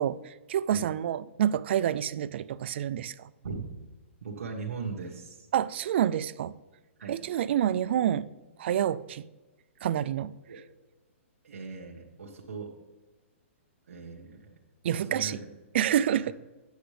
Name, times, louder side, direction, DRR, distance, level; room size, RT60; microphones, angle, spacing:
voice 1, 0.0-3.3 5.5-6.5 7.1-8.3 8.6-9.3 9.8-10.3 14.8-15.4 15.7-16.3, right 10 dB, 55° right, 0.3 m, -28 dB
voice 2, 4.2-5.5 7.0-7.2 10.5-10.6 11.4-12.8 13.9-14.5 14.9-15.5 16.2-16.3, right 4 dB, 80° right, 1.3 m, -39 dB
10.0 x 8.0 x 3.3 m
hypercardioid pair, 155°, 7 cm